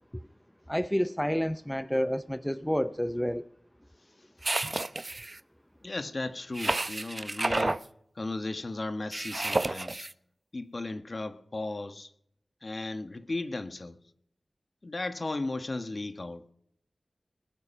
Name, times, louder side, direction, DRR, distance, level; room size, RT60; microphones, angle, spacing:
voice 1, 0.7-3.5, equal, 5° left, 0.6 m, -29 dB
sound 1, 4.4-5.4 6.5-7.8 9.1-10.1, right 2 dB, 45° right, 0.6 m, -30 dB
voice 2, 5.8-7.9 8.1-10.1 10.5-12.1 12.6-14.0 14.8-16.5, left 2 dB, 55° left, 1.3 m, -36 dB
20.5 x 9.5 x 5.7 m
cardioid pair, 45°, 0 cm